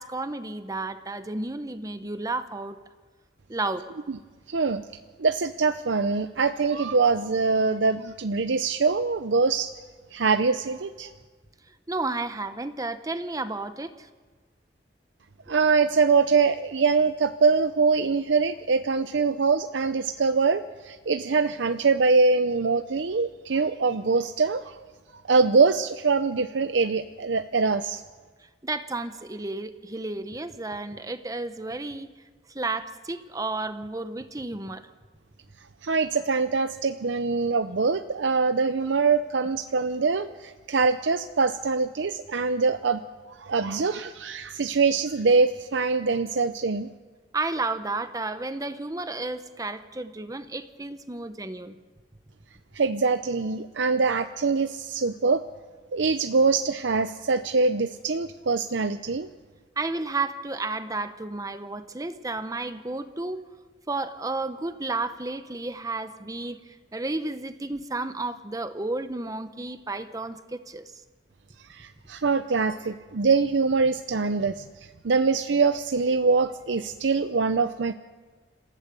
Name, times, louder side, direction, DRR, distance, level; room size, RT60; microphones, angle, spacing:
voice 1, 0.0-2.8 3.5-3.9 11.9-14.1 28.6-32.1 32.5-34.9 47.3-51.8 59.8-63.4 63.9-70.9, right 2 dB, 20° right, 10 dB, 0.9 m, -32 dB
voice 2, 4.5-4.8 5.2-9.7 10.1-11.1 15.5-24.8 25.1-28.0 35.8-43.0 43.3-46.9 52.7-55.4 55.9-59.3 71.7-77.9, right 4 dB, 85° right, 9 dB, 0.6 m, -23 dB
27.0 x 16.0 x 6.9 m, 1.4 s
head